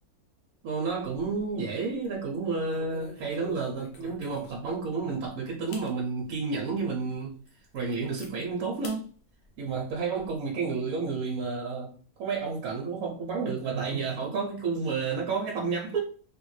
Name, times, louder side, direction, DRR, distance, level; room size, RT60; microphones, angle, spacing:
voice 1, 0.6-7.4 7.7-9.1 9.6-16.0, right 4 dB, 80° right, -2 dB, 1.1 m, -31 dB
sound 1, 1.0-1.6 1.9-2.1 2.7-4.8 5.2-5.3 5.7-5.9 6.4-6.5 7.1-7.2 7.5-8.3 8.8-9.0 9.4-10.3, left 4 dB, 55° left, 0.8 m, -47 dB
3.4 x 2.2 x 3.1 m, 0.42 s
omnidirectional pair, 1.6 m